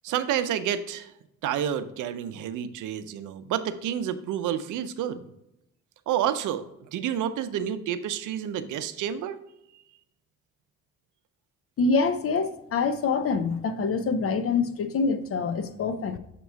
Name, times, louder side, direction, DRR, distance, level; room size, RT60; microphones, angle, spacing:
voice 1, 0.0-1.1 1.4-5.3 6.1-9.4, right 9 dB, 80° right, 11 dB, 0.6 m, -29 dB
voice 2, 11.8-16.2, left 4 dB, 50° left, 10 dB, 0.7 m, -25 dB
7.1 x 3.0 x 4.5 m, 0.83 s
cardioid pair, 90°, 30 cm